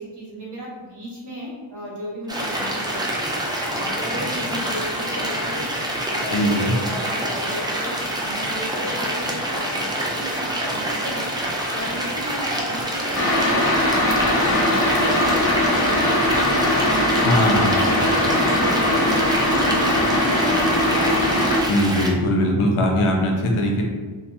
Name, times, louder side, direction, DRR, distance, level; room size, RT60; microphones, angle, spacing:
voice 1, 0.0-5.7 6.1-13.8 14.3-20.9, equal, 55° right, -5 dB, 1.0 m, -34 dB
sound 1, 2.3-22.1, right 1 dB, 10° right, 0.4 m, -26 dB
voice 2, 6.3-6.7 17.2-17.8 21.7-23.8, left 1 dB, 90° left, 0 dB, 0.6 m, -20 dB
sound 2, 13.2-21.6, left 1 dB, 30° left, 0.6 m, -20 dB
2.4 x 2.2 x 2.9 m, 1.4 s
wide cardioid pair, 55°, 48 cm